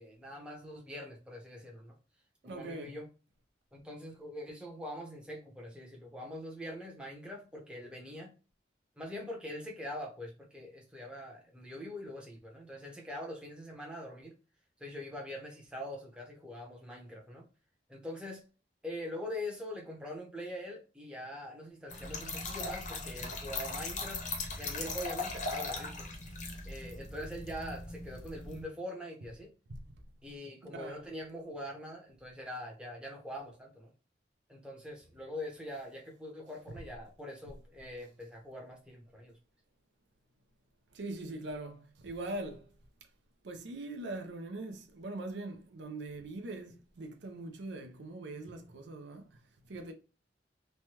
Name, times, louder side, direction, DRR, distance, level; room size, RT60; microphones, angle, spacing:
voice 1, 0.0-1.9 2.4-3.1 3.7-8.3 9.0-14.3 14.8-17.4 17.9-18.4 18.8-24.2 24.6-26.1 26.6-29.5 30.2-33.9 34.5-39.3, left 1 dB, 5° right, 0.8 m, -43 dB
voice 2, 2.4-3.0 29.8-29.9 30.7-31.1 40.9-42.7 43.4-49.9, right 2 dB, 80° right, 0.5 m, -42 dB
Trickle dribble / Fill (with liquid), 21.9-28.6, left 3 dB, 45° left, 0.8 m, -39 dB
3.2 x 2.2 x 2.9 m
head